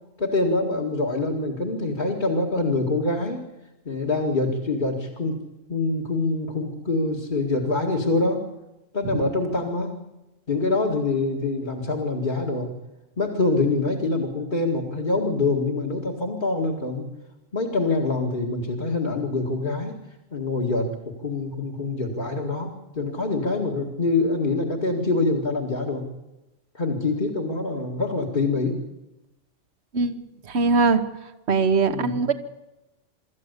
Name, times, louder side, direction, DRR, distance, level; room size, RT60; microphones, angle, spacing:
voice 1, 0.2-3.4 3.8-5.4 5.7-8.4 8.9-10.0 10.5-12.7 13.2-17.0 17.5-20.0 20.3-26.1 26.7-28.8 31.9-32.2, left 3 dB, 40° left, -2 dB, 2.3 m, -25 dB
voice 2, 30.5-31.0 31.5-32.3, right 4 dB, 65° right, 9 dB, 1.5 m, -21 dB
25.0 x 13.5 x 8.2 m, 1.0 s
omnidirectional pair, 1.2 m